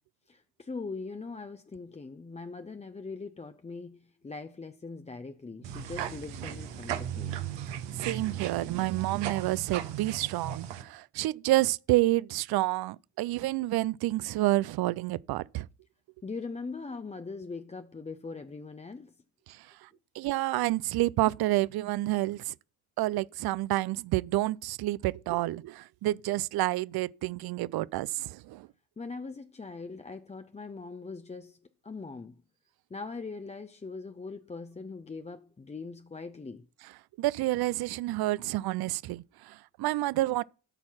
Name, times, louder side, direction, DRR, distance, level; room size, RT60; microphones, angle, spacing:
voice 1, 0.3-7.4 16.2-19.1 29.0-32.4 32.9-36.7, left 4 dB, 15° left, 0.6 m, -41 dB
sound 1, 5.6-10.8, right 10 dB, 75° right, 1.3 m, -36 dB
voice 2, 8.0-15.7 20.2-22.5 23.0-28.7 37.2-40.4, right 17 dB, 60° right, 0.5 m, -29 dB
13.0 x 4.4 x 5.7 m
supercardioid pair, 60°, 43 cm